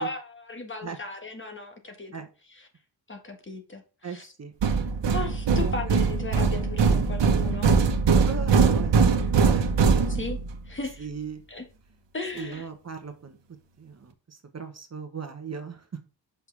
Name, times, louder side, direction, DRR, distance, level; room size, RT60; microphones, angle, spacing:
voice 1, 0.0-2.1 2.5-2.7 3.1-4.3 5.1-7.8 10.1-10.4 10.7-11.1 11.5-11.7 12.1-12.7, left 3 dB, 25° left, 1.7 m, -36 dB
voice 2, 4.0-4.5 5.5-5.8 8.3-9.3 9.5-9.7 11.0-11.4 12.3-13.4 13.8-15.8, right 6 dB, 35° right, 1.1 m, -38 dB
sound 1, 4.6-10.6, right 5 dB, 75° right, 1.2 m, -22 dB
6.8 x 5.7 x 3.4 m
wide cardioid pair, 130°, 43 cm